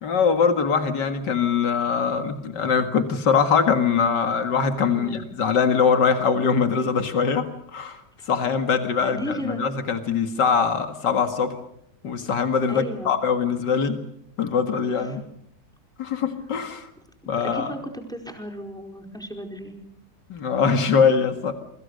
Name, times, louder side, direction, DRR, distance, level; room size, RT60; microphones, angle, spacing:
voice 1, 0.0-11.6 12.0-14.0 14.4-15.2 16.0-16.9 17.3-17.7 20.3-21.5, left 6 dB, 85° left, 7 dB, 2.6 m, -22 dB
voice 2, 4.9-5.3 9.0-9.7 12.7-13.1 14.9-15.2 17.4-19.7, equal, ahead, 3 dB, 4.6 m, -35 dB
29.0 x 24.5 x 6.6 m, 0.73 s
omnidirectional pair, 1.8 m